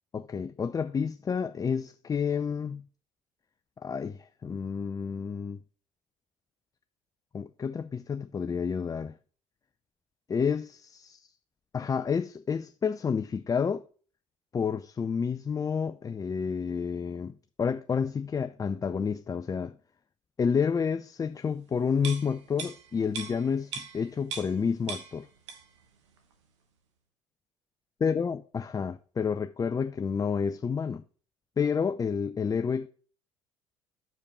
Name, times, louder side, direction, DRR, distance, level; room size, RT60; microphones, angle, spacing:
voice 1, 0.1-2.8 3.8-5.6 7.3-9.1 10.3-11.3 11.7-13.9 14.5-17.3 17.6-19.8 20.4-25.3 28.0-31.0 31.6-32.9, left 6 dB, 25° left, 0.4 m, -30 dB
sound 1, 22.0-24.6 24.9-25.8 26.2-26.3, right 6 dB, 85° right, 1.1 m, -40 dB
6.7 x 5.0 x 5.4 m
hypercardioid pair, 60°, 15 cm